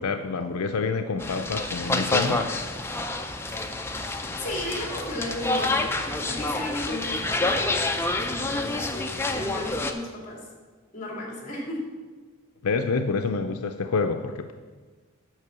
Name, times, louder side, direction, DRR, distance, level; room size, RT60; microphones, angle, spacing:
voice 1, 0.0-2.5 12.6-14.5, left 4 dB, 80° left, 7 dB, 0.5 m, -27 dB
sound 1, 1.2-9.9, left 2 dB, 10° left, 0.5 m, -28 dB
voice 2, 4.4-10.5 10.9-11.8, left 1 dB, 35° left, -1 dB, 2.5 m, -35 dB
9.6 x 5.3 x 6.8 m, 1.4 s
head